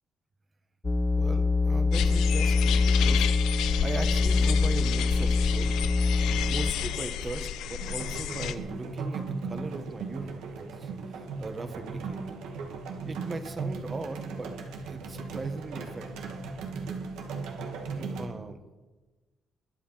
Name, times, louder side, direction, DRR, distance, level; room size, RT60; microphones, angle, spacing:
sound 1, 0.8-6.7, left 3 dB, 20° left, 0.9 m, -24 dB
voice 1, 1.2-5.7 6.5-12.4 13.0-14.5 14.8-16.3 17.9-18.6, right 3 dB, 35° right, 9 dB, 1.7 m, -39 dB
sound 2, 1.9-8.6, left 10 dB, 85° left, 0.8 m, -32 dB
sound 3, 7.8-18.3, right 4 dB, 90° right, 2.0 m, -37 dB
21.5 x 8.7 x 5.9 m, 1.2 s
cardioid pair, 90°, 0 cm